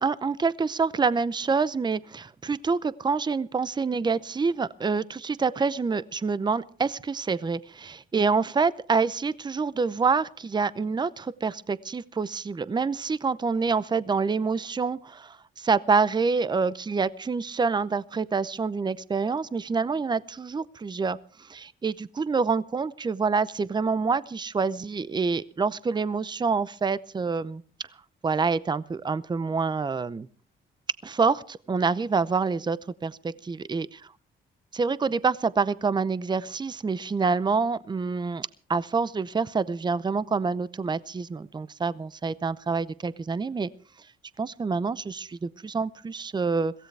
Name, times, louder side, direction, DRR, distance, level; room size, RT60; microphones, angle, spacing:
voice 1, 0.0-15.2 15.6-21.2 21.5-27.6 28.2-30.3 31.0-33.9 34.7-43.7 44.4-46.7, right 4 dB, 20° right, 17 dB, 0.7 m, -27 dB
22.5 x 16.0 x 3.4 m, 0.42 s
cardioid pair, 90°, 20 cm